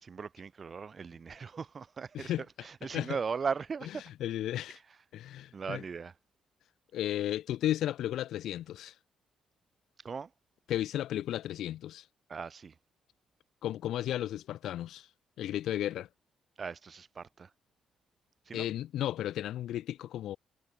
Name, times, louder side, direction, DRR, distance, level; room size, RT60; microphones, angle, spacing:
voice 1, 0.0-2.3 2.6-4.0 5.5-6.1 10.0-10.3 12.3-12.7 16.6-17.5 18.5-18.7, right 5 dB, 40° right, 4.0 m, -38 dB
voice 2, 3.8-4.8 5.1-5.8 6.9-8.9 10.7-12.0 13.6-15.1 15.4-16.1 18.5-20.4, left 12 dB, 80° left, 2.1 m, -34 dB
cardioid pair, 90°, 0 cm